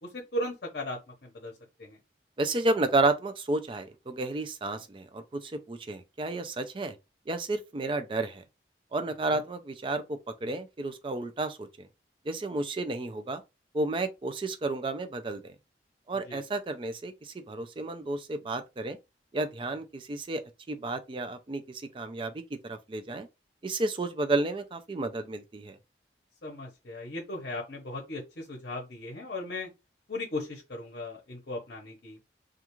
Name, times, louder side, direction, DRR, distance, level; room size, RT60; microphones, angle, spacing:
voice 1, 0.0-1.5 1.8-2.0 9.3-9.4 16.2-16.4 26.4-29.7 30.1-32.2, left 1 dB, 60° left, 0.7 m, -37 dB
voice 2, 2.4-6.9 7.3-8.4 8.9-11.9 12.3-13.4 13.7-15.5 16.1-19.0 19.3-20.4 20.7-23.3 23.6-25.8, right 2 dB, 30° right, 0.3 m, -31 dB
2.4 x 2.3 x 2.9 m
head